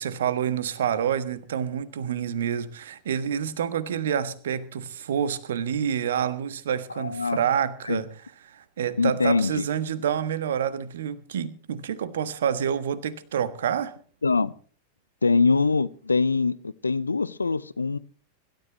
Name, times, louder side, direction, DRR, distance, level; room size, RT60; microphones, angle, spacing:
voice 1, 0.0-8.1 8.4-14.0, right 8 dB, 60° right, 1.3 m, -28 dB
voice 2, 6.9-7.4 7.9-8.0 9.0-9.6 14.2-14.5 15.2-18.0, left 4 dB, 80° left, 0.6 m, -23 dB
24.5 x 13.0 x 3.0 m
figure-of-eight pair, 90°, 0 cm